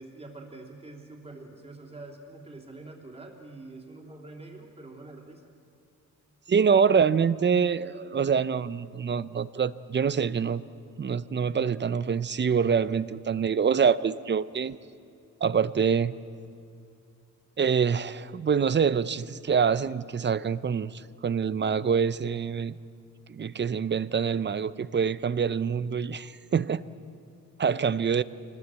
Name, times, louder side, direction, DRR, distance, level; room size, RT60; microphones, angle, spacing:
voice 1, 0.0-5.5, right 2 dB, 20° right, 1 dB, 3.4 m, -45 dB
voice 2, 6.5-10.6 11.0-14.8 15.4-16.1 17.6-22.7 23.3-26.8 27.6-28.2, right 6 dB, 35° right, 16 dB, 0.6 m, -25 dB
26.0 x 20.0 x 8.0 m, 2.5 s
wide cardioid pair, 130°, 32 cm